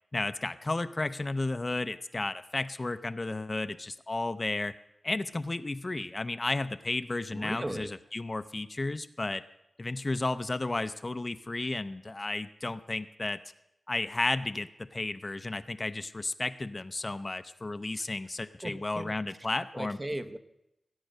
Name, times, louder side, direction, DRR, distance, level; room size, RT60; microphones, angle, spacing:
voice 1, 0.1-4.7 5.0-9.4 9.8-13.4 13.9-20.0, left 2 dB, 30° left, 12 dB, 0.5 m, -33 dB
voice 2, 7.3-8.0 18.0-18.2 18.6-19.4 19.7-20.4, right 1 dB, 25° right, 8 dB, 0.9 m, -38 dB
18.5 x 9.1 x 6.5 m, 0.87 s
wide cardioid pair, 75°, 0 cm